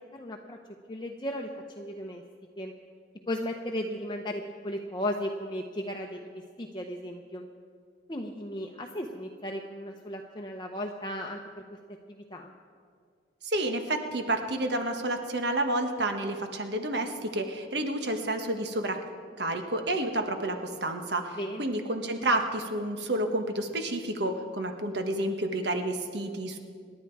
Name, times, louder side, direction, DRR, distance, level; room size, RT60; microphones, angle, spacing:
voice 1, 0.1-0.6 0.9-1.5 1.8-2.2 2.6-2.7 3.3-7.5 8.1-11.4 12.1-12.5 21.4-21.7, left 1 dB, 25° left, 1 dB, 0.8 m, -35 dB
voice 2, 13.4-19.0 19.4-26.6, right 1 dB, 65° right, 5 dB, 1.5 m, -30 dB
27.5 x 11.0 x 4.7 m, 2.1 s
head